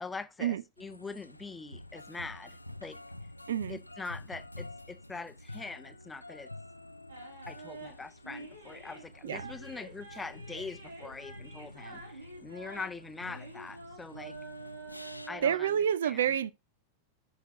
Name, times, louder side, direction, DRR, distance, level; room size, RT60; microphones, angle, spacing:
voice 1, 0.0-3.0 3.7-6.5 7.5-14.4 15.3-16.3, left 4 dB, 10° left, 0.6 m, -43 dB
sound 1, 0.8-15.3, left 1 dB, 85° left, 0.3 m, -48 dB
voice 2, 3.5-3.8 9.2-9.5 15.4-16.5, right 9 dB, 60° right, 0.3 m, -28 dB
sound 2, 7.1-15.6, right 3 dB, 80° right, 2.1 m, -48 dB
6.3 x 5.7 x 4.8 m
figure-of-eight pair, 90°, 0 cm